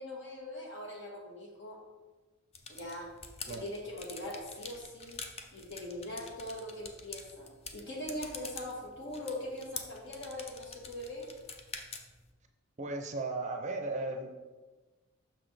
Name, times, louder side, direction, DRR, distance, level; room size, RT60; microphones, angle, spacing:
voice 1, 0.0-1.8 2.7-3.2 3.5-5.2 5.5-11.3, left 1 dB, 55° left, -1 dB, 1.5 m, -41 dB
sound 1, 2.5-12.3, left 4 dB, 30° left, 0.5 m, -47 dB
voice 2, 12.8-14.3, right 2 dB, 35° right, 4 dB, 0.5 m, -36 dB
6.2 x 6.0 x 3.3 m, 1.3 s
head